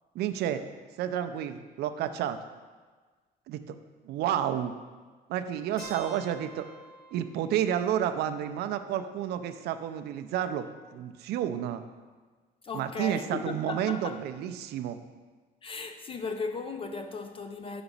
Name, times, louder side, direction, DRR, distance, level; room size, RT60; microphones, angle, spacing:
voice 1, 0.1-0.6 1.0-2.4 3.5-3.8 4.0-4.7 5.3-6.7 7.1-10.7 10.9-11.8 12.7-15.0, right 10 dB, 75° right, 0.4 m, -30 dB
Keyboard (musical), 5.8-9.7, equal, 55° left, 1.7 m, -50 dB
voice 2, 12.6-14.2 15.6-17.8, left 4 dB, 35° left, 0.4 m, -36 dB
5.9 x 4.0 x 5.3 m
cardioid pair, 110°, 17 cm